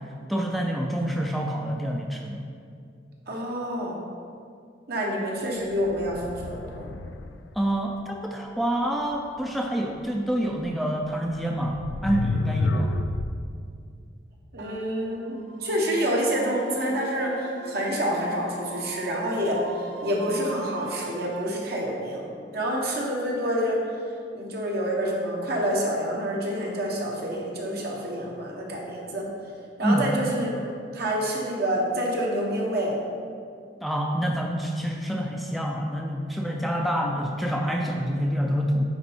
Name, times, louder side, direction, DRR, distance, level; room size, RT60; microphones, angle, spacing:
voice 1, 0.3-2.4 7.6-12.9 29.8-30.0 33.8-38.8, equal, ahead, 0 dB, 0.4 m, -27 dB
voice 2, 3.3-4.0 4.9-6.9 14.5-23.8 24.3-29.2 29.8-32.9, equal, 60° right, -2 dB, 1.4 m, -28 dB
sound 1, 5.8-7.5 10.6-10.7 11.6-13.5, left 2 dB, 90° left, 0.4 m, -30 dB
sound 2, 14.6-21.4, right 3 dB, 85° right, 0.6 m, -39 dB
9.4 x 4.2 x 4.5 m, 2.3 s
head